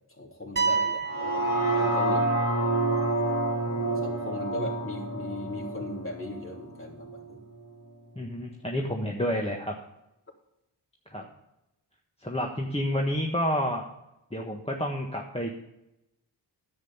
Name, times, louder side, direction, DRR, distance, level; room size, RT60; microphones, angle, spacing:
voice 1, 0.1-1.5 1.7-2.3 3.9-7.4 11.2-11.3, left 1 dB, 30° left, -2 dB, 3.2 m, -37 dB
sound 1, 0.6-2.5, right 5 dB, 25° right, 0.5 m, -30 dB
sound 2, 1.0-7.2 7.6-7.7, right 2 dB, 60° left, 3.9 m, -28 dB
voice 2, 8.1-9.7 11.1-11.2 12.2-13.8 14.3-15.5, equal, 15° left, 0 dB, 1.4 m, -29 dB
10.0 x 8.0 x 5.6 m, 0.88 s
cardioid pair, 60°, 44 cm